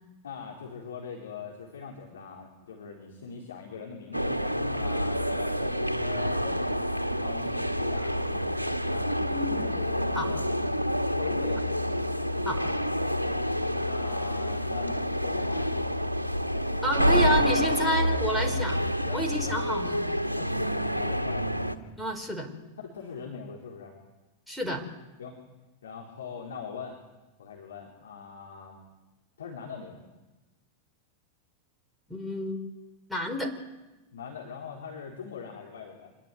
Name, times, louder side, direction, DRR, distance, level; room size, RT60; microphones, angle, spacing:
voice 1, 0.2-6.9 7.2-10.8 11.2-11.9 12.6-12.8 13.2-13.4 13.8-15.7 16.5-17.6 18.3-18.7 19.0-19.6 20.3-21.6 22.8-23.9 25.2-25.4 25.8-27.0 27.4-28.8 29.4-30.0 34.1-36.1, left 6 dB, 65° left, -1 dB, 4.4 m, -41 dB
sound 1, 4.1-21.7, equal, 85° right, 1.7 m, -28 dB
voice 2, 9.3-9.6 10.1-10.3 12.4-12.6 16.8-18.8 19.1-20.0 22.0-22.5 24.5-24.8 32.1-32.6 33.1-33.5, equal, ahead, 2 dB, 4.9 m, -30 dB
26.5 x 20.0 x 9.5 m, 1.1 s
figure-of-eight pair, 90°, 0 cm